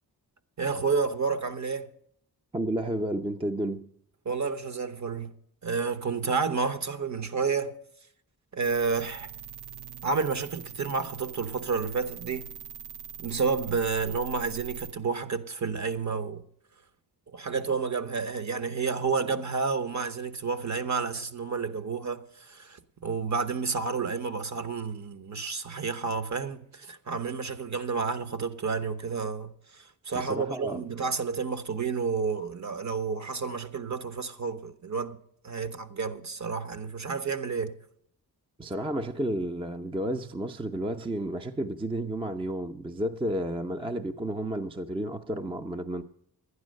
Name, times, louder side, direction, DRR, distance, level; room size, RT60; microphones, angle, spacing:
voice 1, 0.6-1.9 4.2-5.3 5.6-7.8 8.5-9.3 10.0-12.5 13.2-16.4 17.3-35.2 35.4-37.8, right 5 dB, 45° right, 1.0 m, -30 dB
voice 2, 2.5-3.9 30.1-30.8 38.6-46.0, right 1 dB, 15° right, 0.5 m, -31 dB
sound 1, 8.6-14.9, right 8 dB, 80° right, 0.6 m, -42 dB
11.5 x 9.7 x 6.4 m
wide cardioid pair, 90°, 39 cm